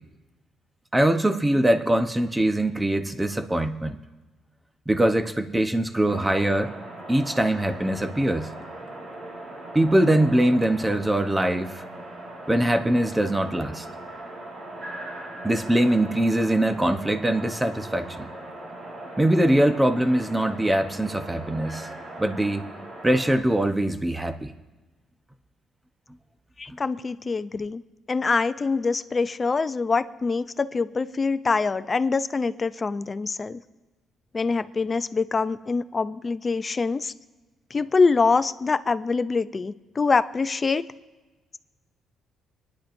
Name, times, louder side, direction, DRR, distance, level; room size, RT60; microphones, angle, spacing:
voice 1, 0.9-4.0 4.9-6.7 7.1-8.5 9.7-11.8 12.5-13.9 15.4-18.3 19.2-21.9 22.2-22.7 23.0-24.5 26.7-26.8, right 1 dB, 10° right, 7 dB, 0.9 m, -22 dB
sound 1, 6.1-23.4, right 1 dB, 55° right, 3.4 m, -39 dB
voice 2, 26.6-27.8 28.1-33.6 34.3-37.1 37.7-40.8, left 4 dB, 30° left, 13 dB, 0.5 m, -24 dB
25.5 x 10.5 x 2.6 m, 1.2 s
cardioid pair, 90°, 0 cm